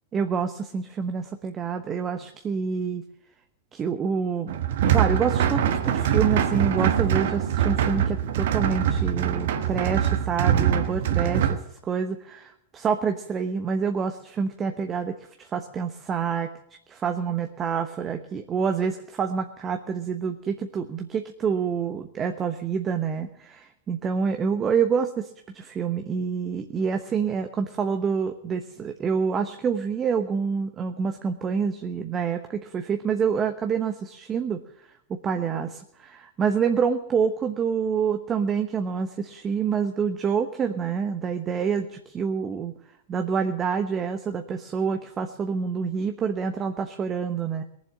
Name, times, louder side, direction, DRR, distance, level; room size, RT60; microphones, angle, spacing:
voice 1, 0.1-3.0 3.7-4.5 4.9-16.5 16.9-42.7 43.1-47.6, right 6 dB, 25° right, 7 dB, 1.0 m, -27 dB
sound 1, 4.5-11.6, right 9 dB, 65° right, 1.4 m, -23 dB
19.0 x 7.5 x 8.5 m, 0.75 s
hypercardioid pair, 105°, 0 cm